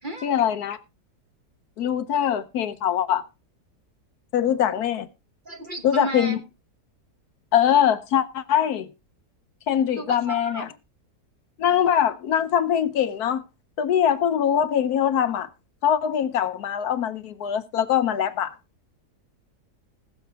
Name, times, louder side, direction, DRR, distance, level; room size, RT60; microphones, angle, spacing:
voice 1, 0.2-0.8 1.8-3.2 4.3-5.1 5.8-6.4 7.5-8.9 9.7-10.7 11.6-13.4 13.8-15.5 15.8-18.5, left 9 dB, 70° left, 1.2 m, -22 dB
voice 2, 5.4-6.4 9.9-10.6, right 2 dB, 35° right, 1.1 m, -33 dB
20.5 x 7.0 x 3.4 m
omnidirectional pair, 1.8 m